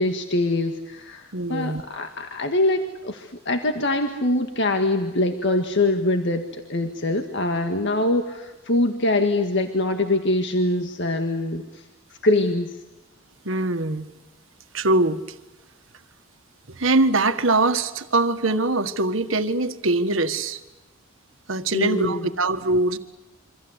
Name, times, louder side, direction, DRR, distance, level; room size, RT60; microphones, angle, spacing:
voice 1, 0.0-11.9 12.2-12.7 21.7-22.3, left 2 dB, 60° left, 5 dB, 1.8 m, -23 dB
voice 2, 1.3-1.8 13.4-14.1 14.7-15.2 16.8-20.6 21.5-23.0, right 2 dB, 65° right, 9 dB, 1.6 m, -22 dB
28.0 x 25.0 x 8.2 m, 1.0 s
head